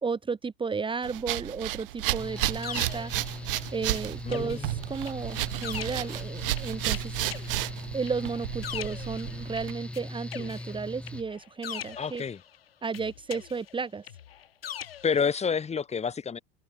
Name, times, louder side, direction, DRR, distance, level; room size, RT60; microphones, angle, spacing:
voice 1, 0.0-3.1 3.7-7.2 7.9-12.2 12.8-14.1, right 5 dB, 15° right, 2.5 m, -33 dB
sound 1, 1.0-9.7, right 16 dB, 65° right, 2.0 m, -33 dB
sound 2, 2.1-4.0 4.3-10.0 10.3-12.6 12.9-15.2, left 10 dB, 75° left, 3.6 m, -42 dB
Mechanical fan, 2.2-11.2, left 1 dB, 5° left, 5.3 m, -40 dB
voice 2, 4.2-4.8 12.0-12.4 15.0-16.4, left 6 dB, 20° left, 4.6 m, -29 dB
figure-of-eight pair, 80°, 30 cm